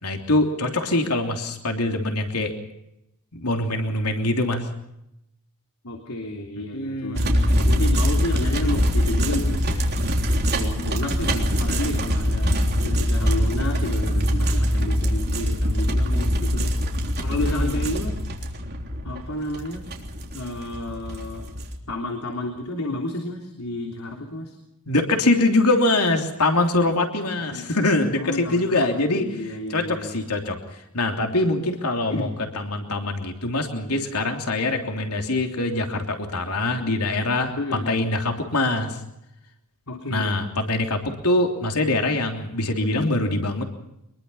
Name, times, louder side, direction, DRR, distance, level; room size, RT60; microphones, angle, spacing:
voice 1, 0.0-2.5 3.3-4.7 6.7-7.6 17.4-17.7 24.9-29.3 29.7-32.3 32.5-39.0 40.1-43.6, left 2 dB, 90° left, 4 dB, 3.2 m, -23 dB
voice 2, 5.8-7.3 7.5-10.2 10.5-18.2 19.0-19.8 20.3-21.5 21.9-24.6 27.5-27.7 28.2-30.2 32.1-32.3 37.6-38.0 39.9-40.4, left 2 dB, 75° left, 2 dB, 3.5 m, -31 dB
sound 1, 7.1-21.8, equal, 50° right, 3.4 m, -23 dB
24.5 x 22.0 x 5.7 m, 0.84 s
head